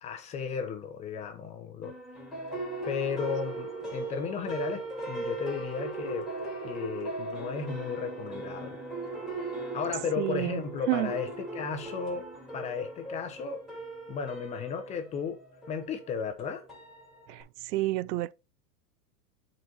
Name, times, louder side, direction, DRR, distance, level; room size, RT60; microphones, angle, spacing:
voice 1, 0.0-1.9 2.8-4.8 5.1-6.3 6.6-8.8 9.7-12.3 12.5-13.6 14.1-15.4 15.7-16.6, left 6 dB, 15° left, 0.6 m, -34 dB
sound 1, 1.8-17.4, right 3 dB, ahead, 2.1 m, -38 dB
voice 2, 10.2-10.6 10.9-11.1 17.3-17.4 17.7-18.3, right 17 dB, 85° right, 0.5 m, -29 dB
8.0 x 3.9 x 4.3 m
supercardioid pair, 150°, 47 cm